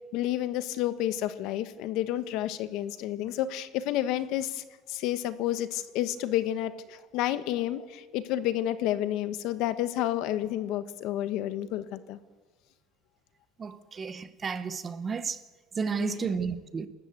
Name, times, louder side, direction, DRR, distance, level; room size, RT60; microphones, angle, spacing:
voice 1, 0.1-12.2 16.0-16.3, left 12 dB, 60° left, 1.3 m, -30 dB
voice 2, 13.6-15.4 15.7-16.9, right 5 dB, 20° right, 0.9 m, -32 dB
28.5 x 13.0 x 8.1 m
cardioid pair, 170°, 0 cm